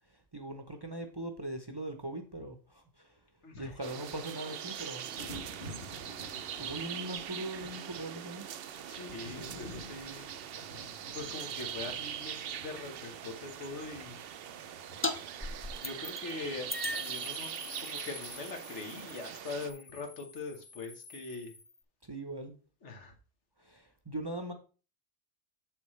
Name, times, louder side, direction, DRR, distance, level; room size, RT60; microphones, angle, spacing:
voice 1, 0.3-3.1 3.6-5.1 6.6-8.5 22.1-22.5 23.6-24.5, right 1 dB, 25° right, 5 dB, 0.7 m, -40 dB
voice 2, 3.4-3.8 5.8-5.9 8.9-10.2 11.1-14.2 15.8-21.5 22.8-23.1, left 3 dB, 80° left, 3 dB, 1.7 m, -42 dB
Thunder, 3.7-17.3 19.0-19.2, left 1 dB, 55° left, 1.5 m, -52 dB
sound 1, 3.8-19.7, right 9 dB, 65° right, 0.7 m, -42 dB
sound 2, 15.0-15.2 15.4-16.3 16.7-21.8, left 2 dB, 20° left, 0.3 m, -41 dB
7.3 x 6.9 x 3.2 m, 0.36 s
omnidirectional pair, 1.2 m